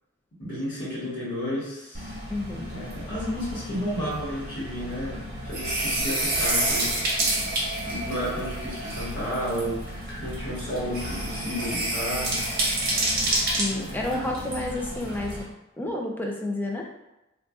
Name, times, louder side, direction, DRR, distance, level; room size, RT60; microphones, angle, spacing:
voice 1, 0.4-2.2 2.7-7.1 7.8-12.5 13.7-14.3, equal, 60° left, -9 dB, 1.1 m, -32 dB
sound 1, 1.9-15.4, right 1 dB, 45° right, 0.8 m, -29 dB
voice 2, 2.3-2.7 13.4-15.5 15.8-16.9, left 1 dB, 10° left, 0 dB, 0.3 m, -30 dB
3.8 x 2.3 x 2.3 m, 0.96 s
head